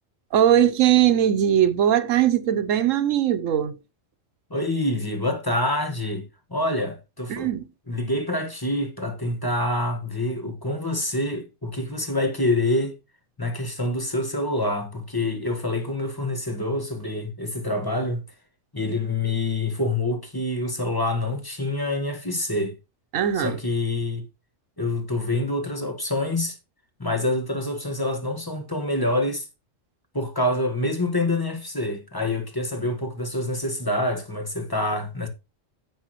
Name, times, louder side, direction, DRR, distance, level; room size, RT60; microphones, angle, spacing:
voice 1, 0.3-3.8 7.3-7.7 23.1-23.6, right 10 dB, 85° right, 1.1 m, -20 dB
voice 2, 4.5-7.5 7.9-12.9 13.4-18.2 18.7-22.7 23.3-24.2 24.8-26.6 27.0-29.5 30.1-35.3, left 1 dB, 15° left, 1.5 m, -26 dB
10.0 x 7.3 x 3.0 m
omnidirectional pair, 1.3 m